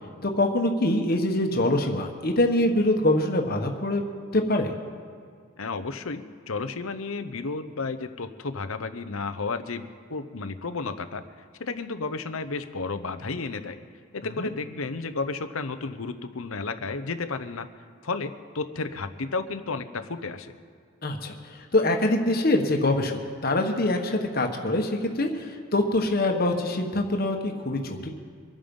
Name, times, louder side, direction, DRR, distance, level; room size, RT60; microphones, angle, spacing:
voice 1, 0.2-4.0 4.3-4.7 14.4-14.5 21.0-28.1, left 1 dB, 45° left, 3 dB, 1.3 m, -24 dB
voice 2, 5.6-11.2 11.6-13.8 14.1-17.7 18.0-20.5, left 4 dB, 75° left, 10 dB, 0.9 m, -32 dB
25.0 x 8.9 x 5.4 m, 2.2 s
head